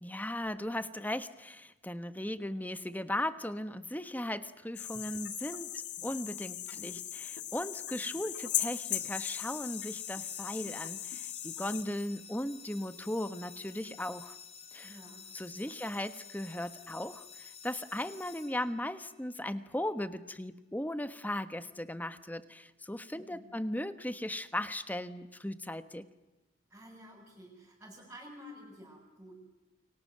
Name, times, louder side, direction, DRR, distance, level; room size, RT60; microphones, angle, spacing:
voice 1, 0.0-14.4 14.7-15.0 15.3-26.0, left 1 dB, 10° left, 11 dB, 1.3 m, -37 dB
sound 1, 4.8-11.8, left 11 dB, 70° left, 2.2 m, -38 dB
sound 2, 8.7-19.1, left 7 dB, 35° left, 2.5 m, -51 dB
voice 2, 14.8-15.7 23.1-23.5 26.7-29.4, equal, 10° right, -6 dB, 6.4 m, -52 dB
29.5 x 24.0 x 7.7 m, 1.1 s
head